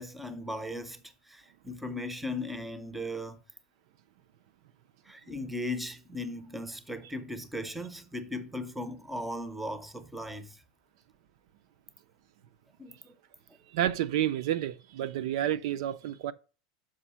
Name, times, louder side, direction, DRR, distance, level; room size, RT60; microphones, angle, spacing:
voice 1, 0.0-3.4 5.0-10.6 12.8-13.1, left 1 dB, 5° right, 0.6 m, -37 dB
voice 2, 13.7-16.3, right 11 dB, 65° right, 0.4 m, -30 dB
6.2 x 5.2 x 5.5 m
supercardioid pair, 165°, 3 cm